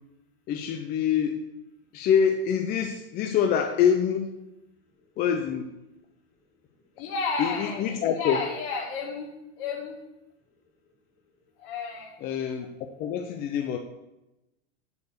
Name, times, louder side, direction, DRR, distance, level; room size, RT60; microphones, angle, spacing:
voice 1, 0.5-1.4 1.9-4.3 5.2-5.6 7.4-8.4 12.2-12.7 13.0-13.8, left 8 dB, 30° left, 5 dB, 0.5 m, -25 dB
voice 2, 7.0-7.8 8.2-10.0 11.6-12.1, left 4 dB, 55° left, 0 dB, 2.5 m, -32 dB
6.8 x 4.7 x 6.5 m, 0.95 s
supercardioid pair, 145°, 32 cm